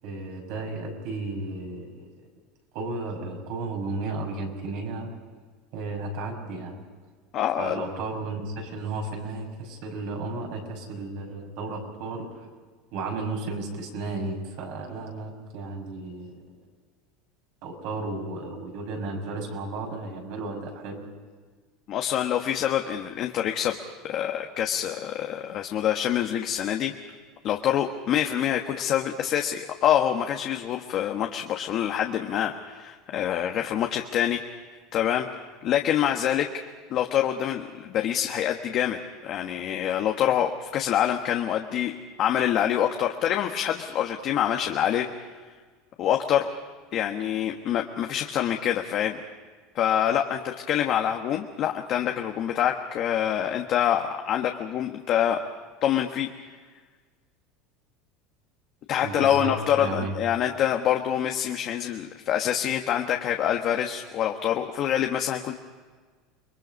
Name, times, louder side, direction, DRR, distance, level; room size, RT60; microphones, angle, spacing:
voice 1, 0.0-2.1 2.7-5.1 5.7-6.8 7.6-12.5 12.9-16.4 17.6-21.0 59.0-60.2, right 3 dB, 60° right, 2 dB, 6.1 m, -34 dB
voice 2, 7.3-7.8 21.9-23.7 24.0-26.9 27.4-34.4 34.9-35.3 35.6-36.5 36.9-45.1 46.0-46.5 46.9-49.2 49.7-55.4 55.8-56.3 58.9-65.5, left 10 dB, 40° left, 3 dB, 1.3 m, -26 dB
29.5 x 22.0 x 5.4 m, 1.5 s
supercardioid pair, 155°, 0 cm